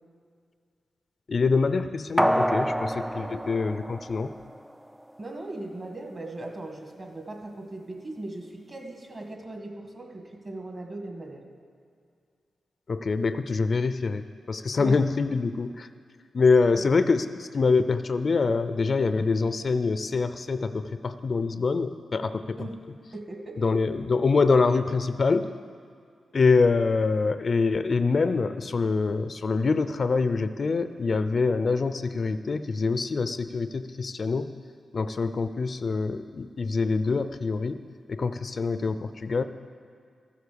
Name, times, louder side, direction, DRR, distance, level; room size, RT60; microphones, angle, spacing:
voice 1, 1.3-4.3 12.9-15.9 16.3-22.6 23.6-25.5 26.3-34.5 34.9-37.8 38.1-39.4, left 4 dB, 55° left, 11 dB, 0.5 m, -25 dB
sound 1, 2.2-4.7 5.1-5.2, equal, 5° right, 0.3 m, -27 dB
voice 2, 3.1-3.4 5.2-11.4 14.8-15.0 16.8-16.9 22.6-22.8 23.1-23.7, right 2 dB, 40° right, 3 dB, 2.1 m, -39 dB
13.5 x 8.1 x 7.0 m, 2.3 s
cardioid pair, 60°, 0 cm